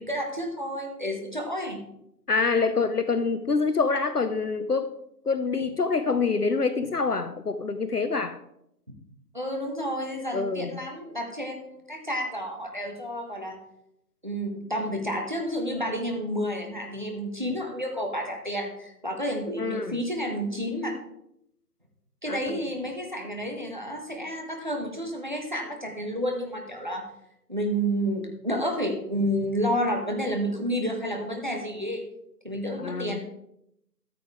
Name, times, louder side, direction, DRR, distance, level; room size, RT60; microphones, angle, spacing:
voice 1, 0.0-1.8 9.3-13.6 14.2-20.9 22.2-27.0 27.5-32.0 32.4-33.2, equal, 30° right, 2 dB, 1.3 m, -30 dB
voice 2, 2.3-4.9 5.3-8.4 10.3-10.8 19.6-20.0 22.3-22.6 32.8-33.2, left 4 dB, 65° left, 10 dB, 0.8 m, -26 dB
13.5 x 7.7 x 3.5 m, 0.77 s
figure-of-eight pair, 175°, 50 cm